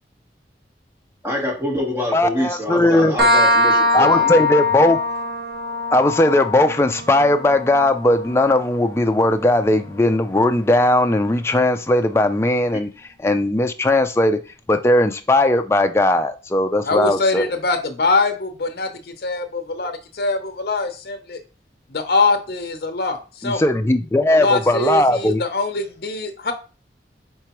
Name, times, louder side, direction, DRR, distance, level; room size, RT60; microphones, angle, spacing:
voice 1, 1.2-4.5, left 1 dB, 15° right, -2 dB, 1.2 m, -25 dB
voice 2, 2.1-3.2 3.9-5.0 5.9-12.9 13.2-14.4 14.7-17.5 23.4-25.4, left 1 dB, 15° left, 7 dB, 0.3 m, -18 dB
sound 1, 3.2-10.6, left 2 dB, 60° right, 1.4 m, -22 dB
voice 3, 16.8-21.4 21.9-23.6 24.3-26.5, left 3 dB, 55° left, 7 dB, 0.7 m, -23 dB
4.6 x 3.7 x 3.0 m, 0.34 s
head